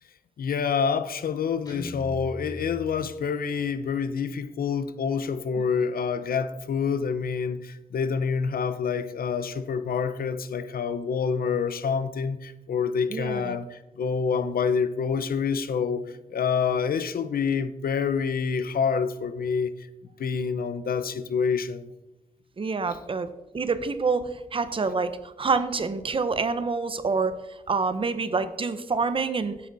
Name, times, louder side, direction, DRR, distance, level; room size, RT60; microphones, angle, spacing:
voice 1, 0.4-19.7 20.2-21.9, left 6 dB, 90° left, 0.9 m, -27 dB
Guitar, 1.7-3.7, left 1 dB, 25° left, 2.9 m, -40 dB
voice 2, 13.1-13.6 22.6-23.3 23.5-27.4 27.7-29.5, right 4 dB, 35° right, 0.9 m, -27 dB
13.5 x 10.0 x 4.1 m
wide cardioid pair, 165°, 15 cm